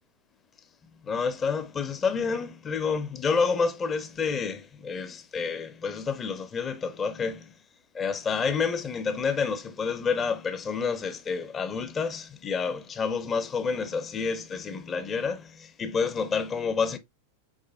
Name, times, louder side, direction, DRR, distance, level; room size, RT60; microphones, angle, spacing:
voice 1, 1.0-7.5 7.9-17.0, left 5 dB, 20° left, 0.5 m, -29 dB
4.9 x 4.0 x 2.3 m
figure-of-eight pair, 90°, 0 cm